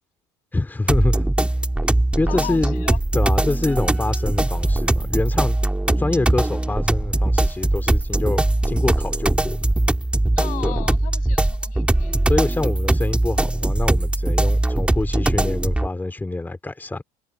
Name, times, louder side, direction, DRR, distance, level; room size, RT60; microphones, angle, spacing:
voice 1, 0.5-1.3 2.2-2.9 3.1-5.6 6.0-9.6 10.6-10.7 12.3-17.0, left 2 dB, 10° left, 3.0 m, -26 dB
sound 1, 0.9-15.9, right 1 dB, 5° right, 2.7 m, -21 dB
voice 2, 2.3-3.0 10.4-12.2, left 18 dB, 65° left, 7.1 m, -36 dB
hypercardioid pair, 85°, 15 cm